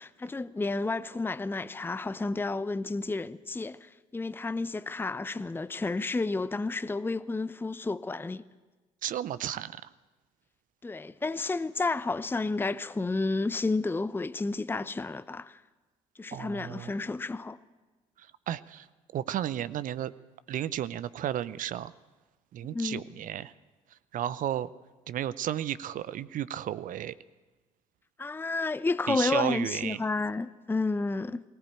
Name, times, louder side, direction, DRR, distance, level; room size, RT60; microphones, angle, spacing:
voice 1, 0.0-8.4 10.8-15.6 16.2-17.6 22.7-23.1 28.2-31.4, left 3 dB, 10° left, 0.7 m, -31 dB
voice 2, 9.0-9.7 16.3-16.9 18.5-18.9 19.1-20.1 20.5-21.9 22.5-23.5 24.1-24.7 25.1-27.1 29.1-30.0, right 11 dB, 50° right, 0.7 m, -33 dB
19.0 x 18.0 x 9.0 m
figure-of-eight pair, 50°, 18 cm